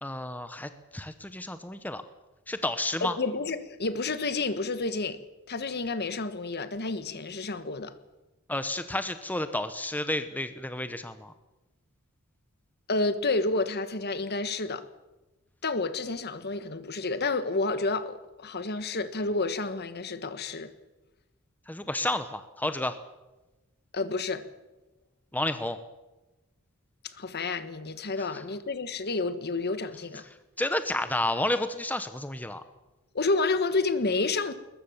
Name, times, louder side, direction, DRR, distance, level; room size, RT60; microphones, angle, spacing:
voice 1, 0.0-2.0 2.5-3.2 8.5-11.3 21.7-23.0 25.3-25.8 28.2-28.4 30.6-32.6, left 1 dB, 10° left, 0.9 m, -31 dB
voice 2, 3.0-5.2 5.5-7.9 12.9-14.8 15.6-20.7 23.9-24.4 27.0-30.2 33.1-34.5, left 3 dB, 50° left, 1.4 m, -30 dB
21.0 x 20.5 x 7.3 m
head